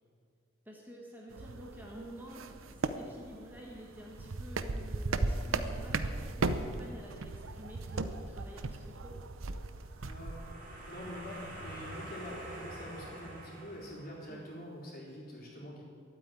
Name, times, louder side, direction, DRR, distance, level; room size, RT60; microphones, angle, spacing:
voice 1, 0.6-9.2 14.3-14.4, equal, 10° right, -2 dB, 1.5 m, -50 dB
sound 1, 1.3-10.5, right 3 dB, 85° right, 0.7 m, -37 dB
sound 2, 9.8-14.5, right 1 dB, 45° right, 3.2 m, -46 dB
voice 2, 10.0-15.8, equal, 45° left, -4 dB, 4.0 m, -46 dB
12.5 x 8.8 x 9.2 m, 2.3 s
head